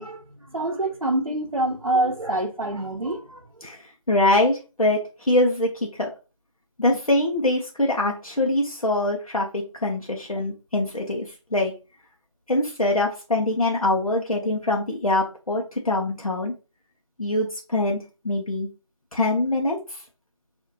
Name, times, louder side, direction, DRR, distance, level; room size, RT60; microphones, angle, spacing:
voice 1, 0.0-3.6, right 1 dB, 70° right, 0.8 m, -26 dB
voice 2, 4.1-6.1 6.8-11.7 12.5-16.5 17.2-18.7 19.1-20.0, left 2 dB, 90° left, 1.0 m, -24 dB
5.1 x 2.7 x 2.7 m
figure-of-eight pair, 180°, 18 cm